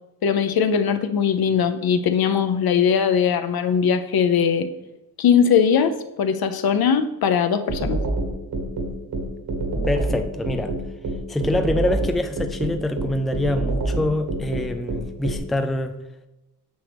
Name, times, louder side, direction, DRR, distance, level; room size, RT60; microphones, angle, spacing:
voice 1, 0.2-4.7 5.2-8.0, left 7 dB, 70° left, 9 dB, 0.7 m, -20 dB
sound 1, 7.7-15.4, right 2 dB, 75° right, 1.9 m, -26 dB
voice 2, 9.9-10.7 11.3-15.9, left 1 dB, ahead, 7 dB, 0.4 m, -25 dB
9.1 x 6.5 x 3.4 m, 0.98 s
wide cardioid pair, 120°, 37 cm